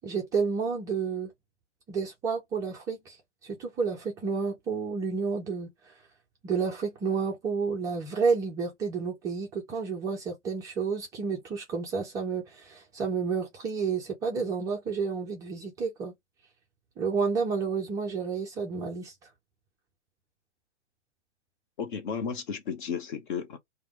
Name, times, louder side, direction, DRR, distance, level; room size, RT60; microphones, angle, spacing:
voice 1, 0.0-1.3 1.9-3.2 3.4-5.9 6.4-16.1 17.0-19.1, right 5 dB, 10° right, 0.4 m, -30 dB
voice 2, 21.8-23.6, left 6 dB, 45° left, 1.1 m, -33 dB
3.2 x 2.2 x 2.9 m
figure-of-eight pair, 125°, 34 cm